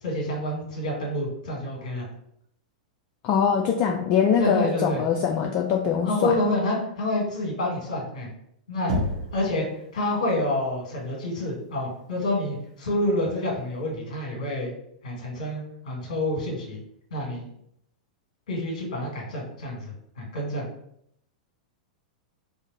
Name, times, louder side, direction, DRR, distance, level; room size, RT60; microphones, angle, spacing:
voice 1, 0.0-2.1 4.4-5.0 6.0-8.3 8.7-8.9 9.3-9.7 9.9-14.7 15.0-16.8 17.1-17.4 18.5-20.7, left 1 dB, 60° left, -1 dB, 1.4 m, -28 dB
voice 2, 3.2-6.3, left 7 dB, 40° left, 1 dB, 0.4 m, -23 dB
Knock, 8.9-9.5, equal, 60° right, 0.9 m, -27 dB
2.6 x 2.5 x 3.8 m, 0.72 s
figure-of-eight pair, 100°, 4 cm